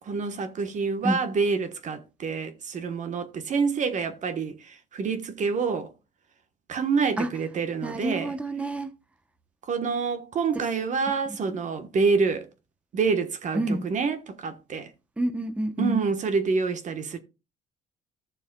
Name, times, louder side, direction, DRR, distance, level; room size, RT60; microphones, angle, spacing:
voice 1, 0.1-5.9 6.7-8.4 9.7-12.5 12.9-14.9 15.8-17.2, right 5 dB, 45° right, 1.3 m, -27 dB
voice 2, 7.8-8.9 10.5-10.6 13.5-13.9 15.2-16.0, right 1 dB, 5° right, 0.9 m, -28 dB
14.5 x 6.8 x 2.3 m
cardioid pair, 110°, 17 cm